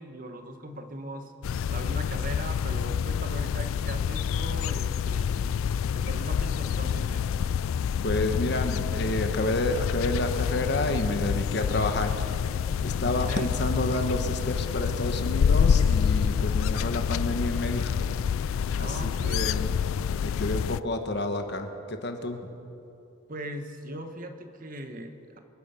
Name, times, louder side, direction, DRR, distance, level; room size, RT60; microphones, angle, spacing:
voice 1, 0.0-1.3 1.7-5.6 5.9-7.2 8.4-8.6 13.1-13.6 18.8-19.5 23.3-25.4, right 1 dB, 40° right, 6 dB, 1.1 m, -39 dB
sound 1, 1.4-20.8, left 7 dB, 75° left, 0.3 m, -27 dB
voice 2, 8.0-12.3 12.8-18.0 18.4-19.7 20.2-22.5, left 1 dB, 50° left, 6 dB, 1.2 m, -30 dB
26.0 x 9.1 x 5.7 m, 2.7 s
head